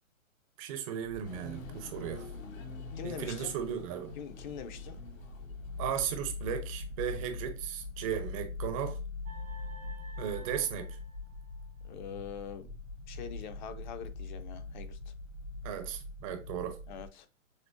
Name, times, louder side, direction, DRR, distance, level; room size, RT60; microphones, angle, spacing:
voice 1, 0.6-2.3 3.0-4.1 5.8-9.0 10.2-11.0 15.6-16.8, right 9 dB, 25° right, 0.5 m, -36 dB
sound 1, 1.0-17.1, left 3 dB, 55° left, 1.2 m, -43 dB
sound 2, 1.2-6.0 6.4-6.5, left 2 dB, 80° left, 1.2 m, -48 dB
voice 2, 3.0-3.6 4.2-5.0 11.8-12.7 13.1-15.1 16.9-17.3, left 7 dB, 35° left, 0.5 m, -43 dB
sound 3, 9.2-11.9, right 1 dB, 90° right, 1.7 m, -53 dB
6.3 x 2.2 x 2.4 m
hypercardioid pair, 130°, 40 cm